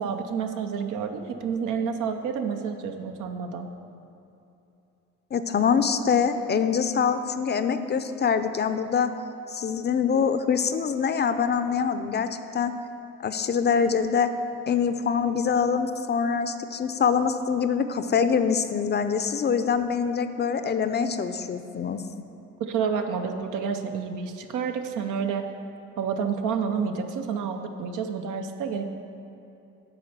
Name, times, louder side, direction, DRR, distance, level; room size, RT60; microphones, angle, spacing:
voice 1, 0.0-3.7 22.6-25.5 26.0-28.9, right 6 dB, 85° right, 6 dB, 0.7 m, -29 dB
voice 2, 5.3-9.1 9.5-12.7 13.2-14.3 14.7-22.0, left 6 dB, 35° left, 10 dB, 0.5 m, -24 dB
9.9 x 4.3 x 6.6 m, 2.8 s
cardioid pair, 90°, 30 cm